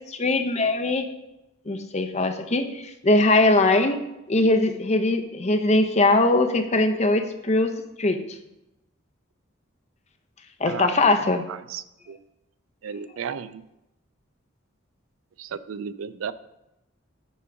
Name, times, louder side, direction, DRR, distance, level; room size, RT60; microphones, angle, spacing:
voice 1, 0.1-1.1 1.7-4.0 4.3-7.7 8.0-8.2 10.6-11.4, left 2 dB, 35° left, 7 dB, 0.7 m, -21 dB
voice 2, 11.5-12.2 12.8-13.6 15.4-16.3, right 7 dB, 80° right, 15 dB, 0.4 m, -34 dB
9.3 x 3.8 x 5.7 m, 0.91 s
head